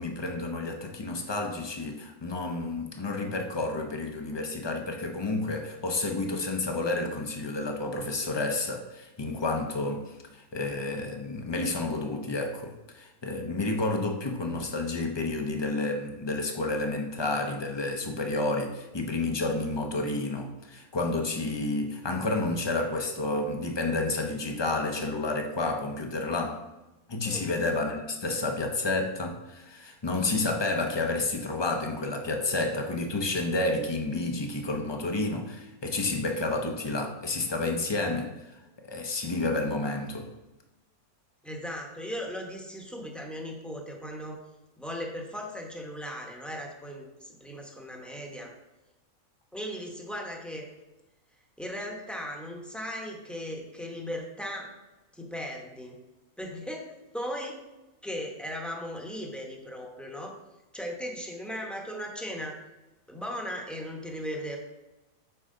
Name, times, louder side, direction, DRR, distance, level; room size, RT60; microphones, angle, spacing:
voice 1, 0.0-26.7 27.1-38.6 38.8-40.3, left 2 dB, 35° left, 3 dB, 0.4 m, -30 dB
voice 2, 41.4-44.4 44.8-48.5 49.5-50.7 51.6-54.7 55.1-56.0 56.4-57.6 58.0-60.4 60.7-62.6 63.1-64.6, equal, ahead, 0 dB, 0.7 m, -37 dB
6.9 x 4.6 x 3.8 m, 1.0 s
omnidirectional pair, 1.5 m